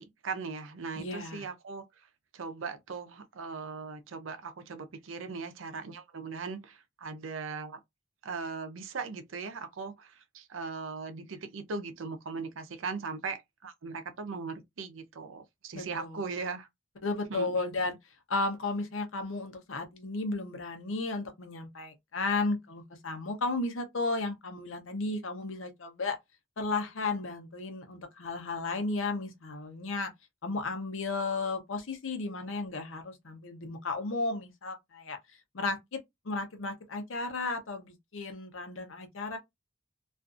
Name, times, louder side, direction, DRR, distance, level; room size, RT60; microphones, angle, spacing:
voice 1, 0.0-1.8 2.3-7.8 8.2-16.7 17.3-17.6, right 4 dB, 85° right, 0.5 m, -39 dB
voice 2, 0.9-1.5 15.7-16.2 17.0-18.0 18.3-26.2 26.6-30.1 30.4-35.2 35.5-39.4, left 3 dB, 85° left, 0.8 m, -34 dB
2.5 x 2.4 x 2.4 m
head